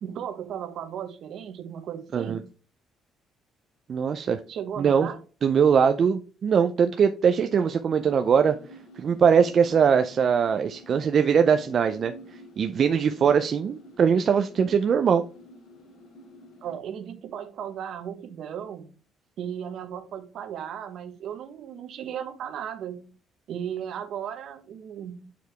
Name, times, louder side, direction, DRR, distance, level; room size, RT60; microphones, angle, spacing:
voice 1, 0.0-2.4 4.5-5.2 16.6-18.9 19.4-23.1 23.5-25.3, right 9 dB, 60° right, 1.1 m, -36 dB
voice 2, 3.9-4.4 4.8-5.1 5.4-8.6 9.0-15.2, right 7 dB, 45° right, 0.4 m, -21 dB
sound 1, 8.0-16.8, equal, 90° left, 2.4 m, -48 dB
7.0 x 4.6 x 3.3 m
cardioid pair, 135°, 0 cm